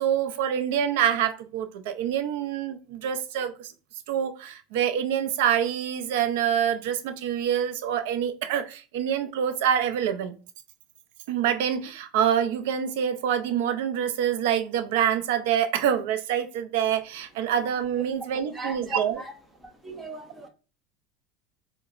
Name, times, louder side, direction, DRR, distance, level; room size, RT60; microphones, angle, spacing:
voice 1, 0.0-3.7 4.1-10.4 11.3-19.2, right 9 dB, 80° right, 0.5 m, -26 dB
voice 2, 18.4-19.3 19.6-20.5, right 1 dB, 10° right, 0.7 m, -37 dB
4.8 x 2.1 x 2.4 m
supercardioid pair, 130°, 0 cm